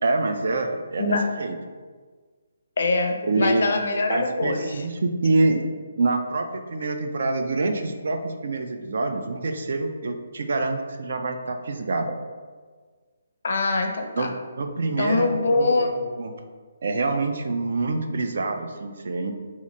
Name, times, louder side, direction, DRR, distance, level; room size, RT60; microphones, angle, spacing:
voice 1, 0.0-1.6 3.2-3.6 4.1-5.7 6.0-12.1 14.2-14.3 14.6-16.3 16.8-19.3, right 3 dB, 65° right, 6 dB, 0.4 m, -26 dB
voice 2, 2.8-4.8 13.4-14.3 14.8-15.9, left 3 dB, 65° left, 5 dB, 0.5 m, -24 dB
2.9 x 2.4 x 4.0 m, 1.5 s
hypercardioid pair, 155°, 0 cm